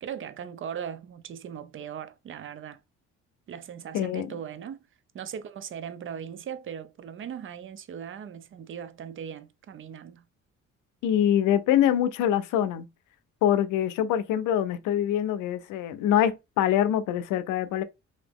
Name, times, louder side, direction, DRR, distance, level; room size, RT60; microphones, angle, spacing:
voice 1, 0.0-2.8 3.5-4.8 5.1-10.3, right 8 dB, 45° right, 0.5 m, -39 dB
voice 2, 3.9-4.3 11.0-12.9 13.4-17.8, left 10 dB, 90° left, 0.5 m, -24 dB
2.9 x 2.7 x 3.4 m
cardioid pair, 90°, 30 cm